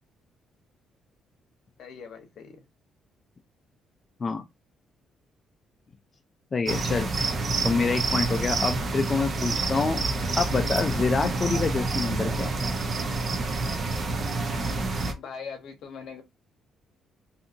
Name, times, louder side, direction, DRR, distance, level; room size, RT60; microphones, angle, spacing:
voice 1, 1.8-2.6 15.1-16.2, left 6 dB, 70° left, 0.8 m, -41 dB
voice 2, 6.5-7.1 7.6-10.0 10.4-12.5, left 4 dB, 35° left, 0.4 m, -26 dB
sound 1, 6.6-15.1, right 3 dB, 45° right, 0.6 m, -28 dB
2.7 x 2.5 x 2.5 m
cardioid pair, 110°, 0 cm